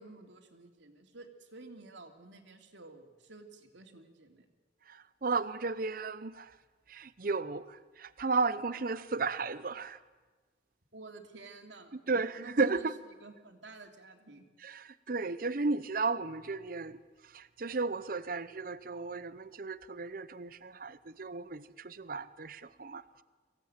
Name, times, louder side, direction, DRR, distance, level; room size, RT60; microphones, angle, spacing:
voice 1, 0.0-4.5 10.9-12.0 12.4-14.4, right 3 dB, 80° right, 2.8 m, -52 dB
voice 2, 4.9-6.5 6.9-10.0 12.1-12.9 14.6-17.0 17.3-23.2, right 4 dB, 50° right, 0.7 m, -34 dB
24.5 x 16.5 x 8.9 m
head